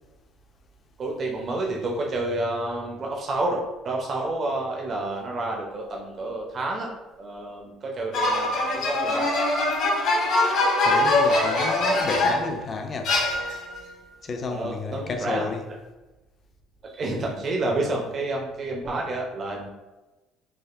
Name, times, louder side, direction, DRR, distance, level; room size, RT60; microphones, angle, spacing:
voice 1, 1.0-9.3 14.5-15.4 16.8-19.7, right 2 dB, 40° right, 0.4 m, -29 dB
sound 1, 8.1-12.5 13.0-13.8, left 2 dB, 65° left, 1.2 m, -23 dB
voice 2, 10.8-13.2 14.2-15.6, left 4 dB, 35° left, 0.4 m, -31 dB
3.4 x 2.3 x 2.4 m
cardioid pair, 115°, 0 cm